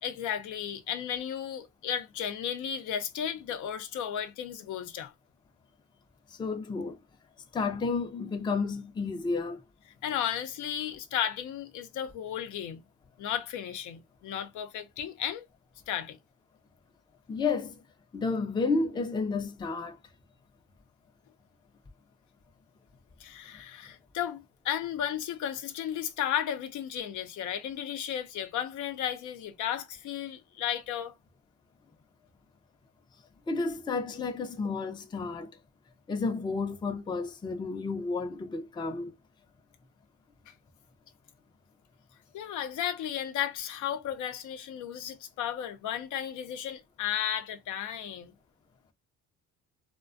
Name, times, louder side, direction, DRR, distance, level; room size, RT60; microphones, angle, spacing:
voice 1, 0.0-5.1 10.0-12.8 13.2-15.4 15.9-16.2 23.2-31.1 40.5-40.6 42.3-48.3, left 10 dB, 80° left, 0.6 m, -34 dB
voice 2, 6.3-7.0 7.5-9.6 17.3-17.8 18.1-20.0 33.5-35.5 36.1-39.1, left 4 dB, 15° left, 0.4 m, -31 dB
2.4 x 2.1 x 2.5 m
cardioid pair, 90°, 30 cm